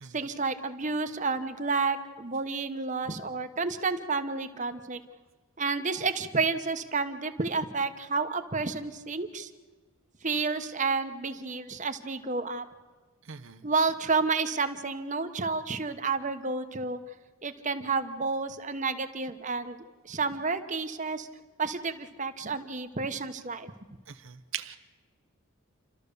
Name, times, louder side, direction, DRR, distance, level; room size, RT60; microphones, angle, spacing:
voice 1, 0.1-5.0 5.6-9.5 10.2-12.6 13.6-17.0 17.4-19.8 20.0-21.3 21.6-23.7, right 4 dB, 35° right, 9 dB, 1.1 m, -30 dB
voice 2, 13.3-13.6 24.1-24.8, right 9 dB, 65° right, 8 dB, 0.9 m, -40 dB
29.0 x 13.0 x 6.8 m, 1.4 s
head